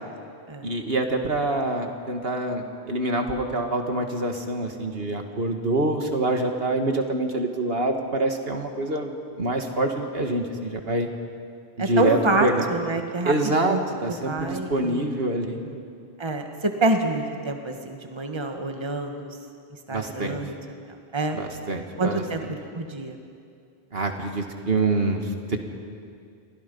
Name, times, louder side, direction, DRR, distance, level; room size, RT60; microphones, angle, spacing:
voice 1, 0.6-11.1 11.9-12.6 13.2-15.8 19.9-20.4 21.3-22.2 23.9-25.6, right 2 dB, 65° right, 4 dB, 2.1 m, -26 dB
voice 2, 11.8-13.8 14.1-15.2 16.2-19.4 19.9-20.5 21.1-21.4 22.0-23.2, right 2 dB, 25° right, 4 dB, 1.6 m, -27 dB
30.0 x 23.5 x 5.5 m, 2.4 s
omnidirectional pair, 1.1 m